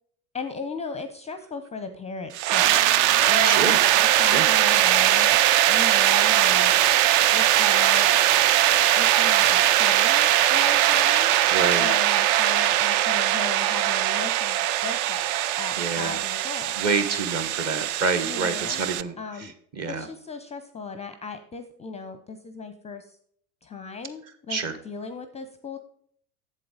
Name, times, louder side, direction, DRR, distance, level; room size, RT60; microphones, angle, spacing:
voice 1, 0.3-2.8 3.3-5.4 5.7-6.7 7.3-8.1 9.0-11.3 11.8-16.7 18.2-18.8 19.2-19.5 19.9-23.2 23.6-25.8, left 4 dB, 15° left, 10 dB, 0.6 m, -37 dB
sound 1, 2.3-19.0, right 13 dB, 50° right, 0.5 m, -20 dB
voice 2, 3.4-3.8 4.3-4.5 11.5-11.9 15.8-16.2 16.8-19.1 19.8-20.1 24.5-24.8, right 4 dB, 35° right, 8 dB, 1.3 m, -27 dB
7.7 x 7.6 x 3.8 m, 0.63 s
figure-of-eight pair, 80°, 45 cm